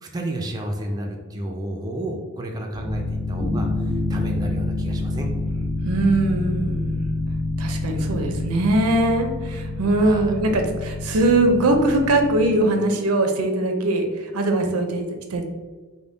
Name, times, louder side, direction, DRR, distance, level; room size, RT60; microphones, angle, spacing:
voice 1, 0.0-5.3 10.0-10.3, right 1 dB, 20° right, 1 dB, 0.3 m, -31 dB
sound 1, 2.7-12.6, left 2 dB, 50° left, 1.1 m, -27 dB
voice 2, 5.8-7.0 7.6-15.5, right 2 dB, 75° right, 4 dB, 0.5 m, -21 dB
3.5 x 2.1 x 3.9 m, 1.3 s
head